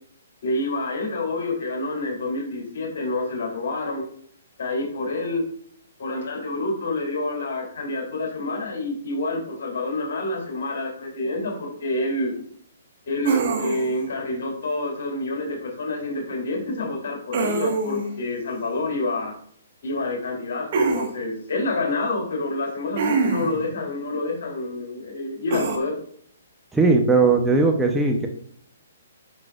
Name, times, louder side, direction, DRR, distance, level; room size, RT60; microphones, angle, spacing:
voice 1, 0.4-4.0 4.6-5.4 6.0-12.3 13.0-19.3 19.8-26.0, left 2 dB, 60° left, 0 dB, 3.4 m, -28 dB
sound 1, 13.2-14.0 17.3-18.1 20.7-21.1 23.0-23.6 25.5-25.8, right 4 dB, 45° right, 1.7 m, -24 dB
voice 2, 26.7-28.3, right 3 dB, 5° right, 2 dB, 0.9 m, -18 dB
9.6 x 6.0 x 2.5 m, 0.62 s
figure-of-eight pair, 130°, 0 cm